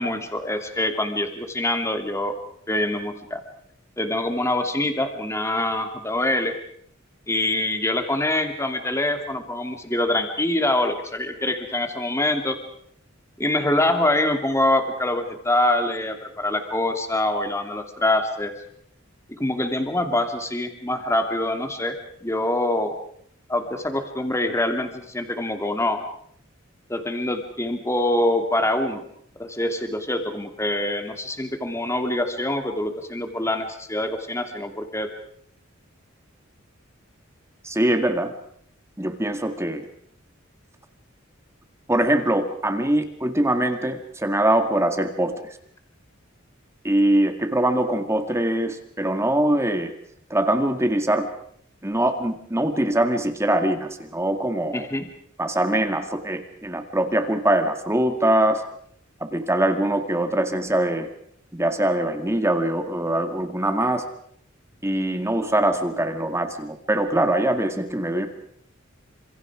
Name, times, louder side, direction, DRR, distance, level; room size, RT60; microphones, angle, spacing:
voice 1, 0.0-2.4 2.7-3.4 4.0-6.5 7.3-12.6 13.4-18.5 19.3-21.9 22.2-22.9 23.5-26.0 26.9-29.0 29.4-35.1 54.7-55.0, left 1 dB, 15° left, 6 dB, 2.7 m, -24 dB
voice 2, 37.6-38.3 39.0-39.8 41.9-45.6 46.8-49.9 50.3-51.3 51.8-54.9 55.4-58.6 59.2-61.1 61.5-64.0 64.8-68.3, right 1 dB, 15° right, 7 dB, 2.0 m, -23 dB
29.5 x 27.0 x 5.0 m, 0.66 s
head